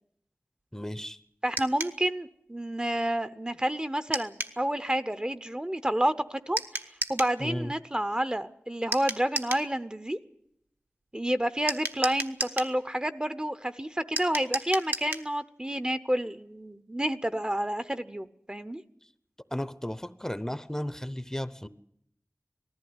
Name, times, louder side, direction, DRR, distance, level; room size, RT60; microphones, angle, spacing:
voice 1, 0.7-1.2 7.4-7.7 19.5-21.7, left 1 dB, 10° left, 14 dB, 0.7 m, -34 dB
voice 2, 1.4-6.8 7.1-10.2 11.1-18.8, right 1 dB, 20° right, 11 dB, 0.7 m, -29 dB
sound 1, 1.6-2.0 4.1-4.6 6.6-7.4 8.9-9.7 11.7-12.7 14.2-15.3, right 2 dB, 65° right, 1.3 m, -33 dB
19.5 x 14.5 x 9.6 m, 0.73 s
wide cardioid pair, 55°, 4 cm